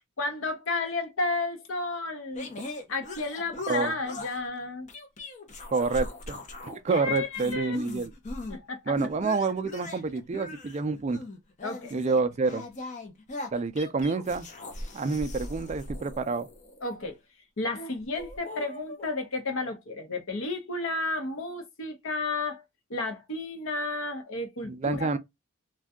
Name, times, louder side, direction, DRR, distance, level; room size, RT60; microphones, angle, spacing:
voice 1, 0.2-2.5 2.9-4.9 6.9-7.8 8.5-8.9 11.6-12.0 16.8-17.2 17.6-22.6 22.9-25.2, left 3 dB, 65° left, 0.7 m, -32 dB
sound 1, 2.4-4.5 4.9-6.8 7.1-8.6 9.0-16.9 17.7-19.1, left 2 dB, 35° left, 0.5 m, -40 dB
voice 2, 5.7-8.1 8.9-11.2 11.9-12.7 13.5-14.5 14.9-16.5 24.6-25.2, right 4 dB, 30° right, 0.3 m, -28 dB
2.6 x 2.2 x 3.5 m
head